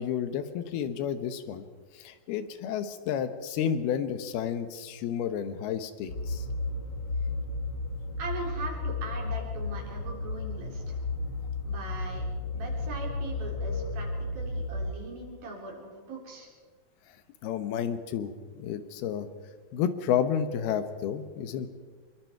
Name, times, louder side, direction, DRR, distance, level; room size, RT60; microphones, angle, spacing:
voice 1, 0.0-1.6 2.0-6.4 17.4-19.3 19.7-21.7, left 8 dB, 85° left, 10 dB, 3.0 m, -31 dB
sound 1, 6.1-14.9, left 3 dB, 55° left, 1.2 m, -33 dB
voice 2, 8.2-11.0 11.6-12.2 12.5-14.1 14.3-16.5, right 3 dB, 70° right, -1 dB, 5.7 m, -40 dB
24.5 x 22.5 x 4.6 m, 1.5 s
omnidirectional pair, 4.3 m